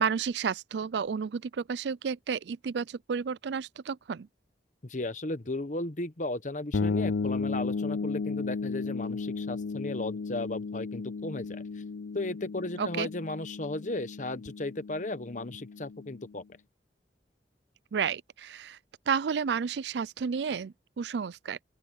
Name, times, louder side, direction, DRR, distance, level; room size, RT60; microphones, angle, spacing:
voice 1, 0.0-4.3 12.8-13.1 17.9-18.8 19.1-21.6, right 6 dB, 75° right, 0.4 m, -31 dB
voice 2, 4.8-11.8 12.1-16.4, left 2 dB, 45° left, 1.1 m, -35 dB
sound 1, 6.7-16.3, left 4 dB, 80° left, 0.6 m, -34 dB
open air
head